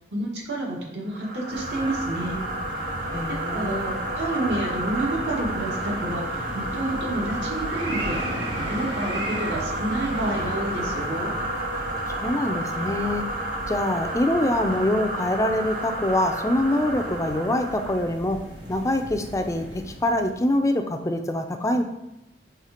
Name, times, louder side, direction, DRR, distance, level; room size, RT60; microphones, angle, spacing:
voice 1, 0.1-2.5 3.3-8.2 8.6-11.3, right 1 dB, 70° right, -2 dB, 1.5 m, -29 dB
sound 1, 1.1-18.1, right 1 dB, 50° right, 0.8 m, -31 dB
sound 2, 1.5-20.6, equal, 85° right, 1.5 m, -37 dB
voice 2, 3.1-4.0 12.1-13.3 13.7-21.8, left 1 dB, 20° left, 6 dB, 0.4 m, -25 dB
5.7 x 3.3 x 4.9 m, 0.91 s
head